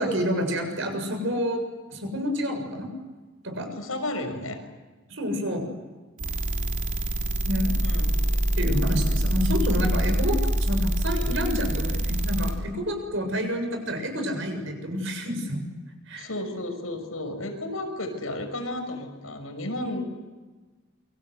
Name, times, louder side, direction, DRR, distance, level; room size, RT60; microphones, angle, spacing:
voice 1, 0.0-1.6 1.9-2.9 3.4-3.7 5.1-5.7 7.5-7.8 8.5-15.6 16.1-16.3, equal, 60° right, 5 dB, 7.3 m, -28 dB
voice 2, 3.8-4.6 7.8-8.2 16.2-20.0, left 1 dB, 85° left, 6 dB, 6.2 m, -33 dB
sound 1, 6.2-12.5, equal, 35° right, 3.6 m, -25 dB
28.0 x 25.0 x 8.1 m, 1.3 s
head